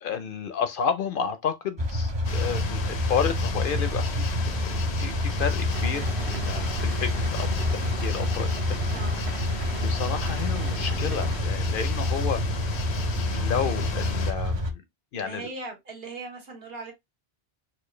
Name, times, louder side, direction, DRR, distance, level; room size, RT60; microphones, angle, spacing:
voice 1, 0.0-9.0 9.8-12.4 13.3-14.8 15.1-15.5, left 7 dB, 65° left, 0.7 m, -31 dB
sound 1, 1.8-14.7, left 1 dB, 35° right, 0.4 m, -28 dB
sound 2, 2.2-14.3, left 6 dB, 85° left, 1.0 m, -35 dB
sound 3, 5.7-11.4, right 6 dB, 90° right, 1.1 m, -41 dB
voice 2, 15.1-16.9, right 3 dB, 70° right, 1.5 m, -39 dB
4.3 x 2.3 x 3.1 m
omnidirectional pair, 1.1 m